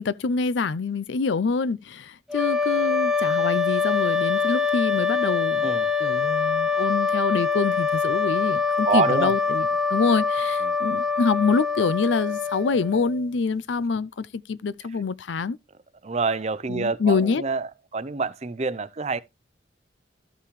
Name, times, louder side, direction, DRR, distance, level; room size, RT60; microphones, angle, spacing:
voice 1, 0.0-5.7 6.0-15.6 16.7-17.4, left 4 dB, 90° left, 0.5 m, -26 dB
sound 1, 2.3-13.2, left 5 dB, 5° right, 0.8 m, -24 dB
voice 2, 8.9-9.3 10.6-10.8 16.0-19.2, right 4 dB, 40° right, 0.6 m, -26 dB
13.0 x 5.8 x 3.2 m
head